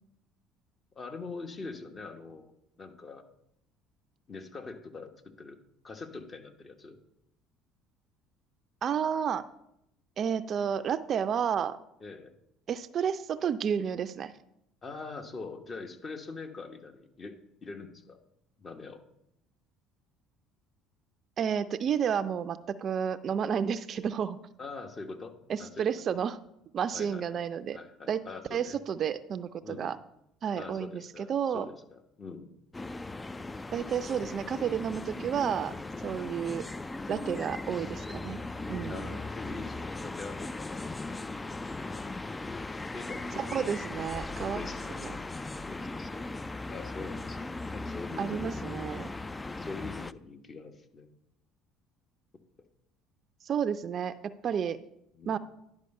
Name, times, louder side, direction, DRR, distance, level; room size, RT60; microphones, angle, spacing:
voice 1, 0.9-2.5 2.8-3.2 4.3-7.0 12.0-12.3 14.8-18.2 18.6-19.0 24.6-26.2 26.9-27.4 27.7-28.8 29.6-29.9 30.6-32.5 35.9-36.1 38.0-38.3 38.9-41.2 41.9-42.2 42.9-43.7 44.4-45.2 45.7-46.2 46.7-48.8 49.6-51.1 55.1-55.4, left 3 dB, 35° left, 5 dB, 1.1 m, -43 dB
voice 2, 8.8-9.4 10.2-11.8 12.7-14.3 21.4-24.4 25.5-26.4 26.7-27.8 28.1-28.2 28.5-30.0 30.4-31.7 33.7-35.7 36.0-36.7 37.1-38.4 38.7-39.1 43.4-44.7 45.0-45.2 48.2-49.1 53.4-54.8 55.3-55.4, right 8 dB, 50° right, 13 dB, 0.4 m, -31 dB
sound 1, 32.7-50.1, left 2 dB, 20° left, 0.3 m, -38 dB
10.5 x 4.8 x 5.4 m, 0.79 s
hypercardioid pair, 65°, 0 cm